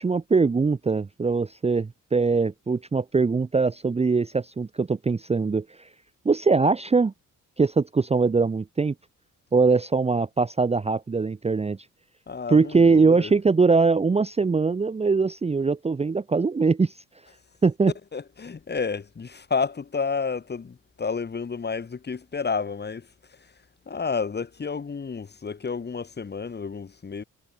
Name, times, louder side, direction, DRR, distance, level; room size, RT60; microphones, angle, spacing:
voice 1, 0.0-5.9 6.2-7.1 7.6-8.9 9.5-11.8 12.5-16.9 17.6-17.9, right 4 dB, 20° right, 0.6 m, -22 dB
voice 2, 12.3-13.3 18.1-23.4 23.9-27.2, left 5 dB, 30° left, 1.3 m, -30 dB
cardioid pair, 70°, 34 cm